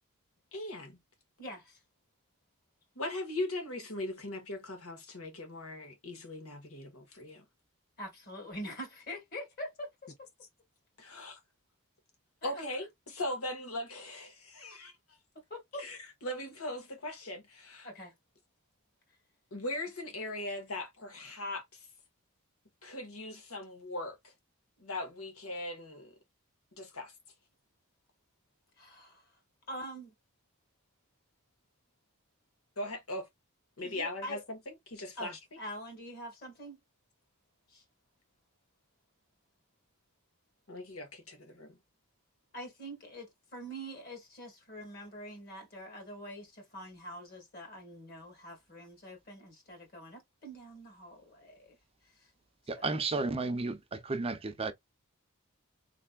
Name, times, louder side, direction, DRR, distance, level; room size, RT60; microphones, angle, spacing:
voice 1, 0.5-1.0 2.9-7.4 11.0-11.4 12.4-14.9 15.8-17.9 19.5-21.9 22.8-24.2 24.8-26.1 26.8-27.1 32.8-33.3 33.8-35.4 40.7-41.8, left 1 dB, 85° left, 1.7 m, -39 dB
voice 2, 1.4-1.8 8.0-9.9 12.4-12.6 15.5-15.9 17.8-18.1 28.8-29.3 29.7-30.1 33.8-34.4 35.2-36.8 37.7-37.8 42.5-51.8 52.0-52.3 52.7-52.9, equal, 50° left, 1.7 m, -45 dB
voice 3, 52.7-54.7, right 3 dB, 30° right, 0.6 m, -33 dB
3.9 x 3.3 x 2.4 m
head